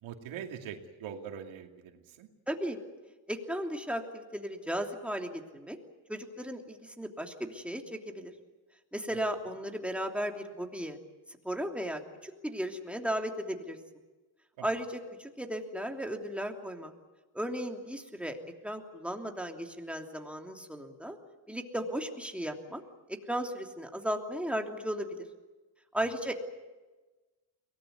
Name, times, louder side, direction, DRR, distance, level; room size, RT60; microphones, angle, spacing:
voice 1, 0.0-2.3 9.1-9.2 14.6-14.7 25.9-26.1, right 8 dB, 85° right, 4 dB, 2.6 m, -43 dB
voice 2, 2.5-2.8 3.3-5.8 6.1-8.3 8.9-11.0 11.4-13.8 14.6-16.9 17.3-18.4 18.6-21.2 21.5-22.8 23.1-25.2 25.9-26.3, equal, 5° right, 3 dB, 3.1 m, -35 dB
23.0 x 19.0 x 9.6 m, 1.2 s
cardioid pair, 85°, 45 cm